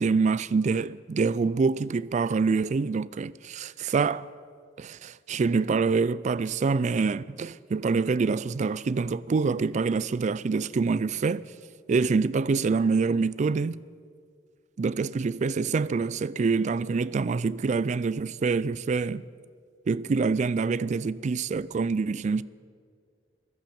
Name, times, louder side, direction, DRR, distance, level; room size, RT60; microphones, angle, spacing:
voice 1, 0.0-4.3 4.8-11.4 11.9-13.8 14.8-19.2 19.9-22.4, right 4 dB, 40° right, 0.3 m, -26 dB
14.5 x 12.0 x 7.0 m
head